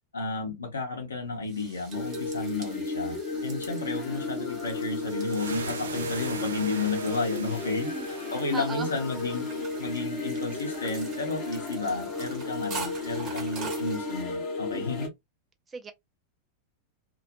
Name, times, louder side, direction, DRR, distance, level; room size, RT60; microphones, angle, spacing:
voice 1, 0.1-7.9 8.3-9.5 9.8-15.1, left 3 dB, 70° left, 0.7 m, -32 dB
sound 1, 1.2-14.2, right 5 dB, 35° right, 1.0 m, -45 dB
sound 2, 1.9-15.1, left 3 dB, 40° left, 0.7 m, -34 dB
sound 3, 4.8-10.9, right 5 dB, 65° right, 0.5 m, -42 dB
voice 2, 7.8-8.9 14.7-14.8 15.7-15.9, right 4 dB, 20° right, 0.5 m, -39 dB
2.2 x 2.0 x 2.8 m
figure-of-eight pair, 90°, 0 cm